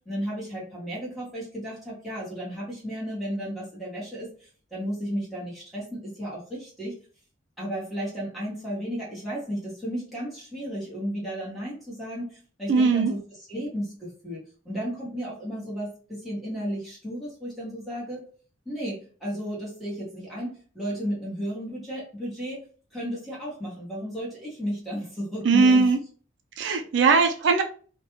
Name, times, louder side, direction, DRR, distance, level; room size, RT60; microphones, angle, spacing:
voice 1, 0.0-7.0 7.6-13.2 13.5-18.2 18.6-22.6 22.9-25.9 27.0-27.2, equal, ahead, -8 dB, 1.0 m, -33 dB
voice 2, 12.7-13.1 25.4-26.0 26.6-27.6, right 4 dB, 60° right, 5 dB, 0.3 m, -19 dB
2.3 x 2.1 x 3.0 m, 0.41 s
head